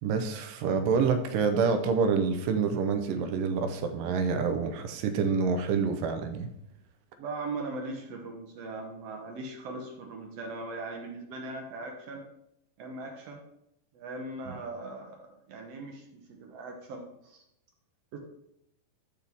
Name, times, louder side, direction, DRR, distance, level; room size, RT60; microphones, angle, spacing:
voice 1, 0.0-6.5 14.5-14.6, right 5 dB, 90° right, 7 dB, 2.5 m, -27 dB
voice 2, 7.2-12.3 12.8-13.4 13.9-17.4 18.1-18.2, right 2 dB, 70° right, 2 dB, 1.7 m, -39 dB
12.0 x 4.2 x 3.4 m, 0.78 s
omnidirectional pair, 3.8 m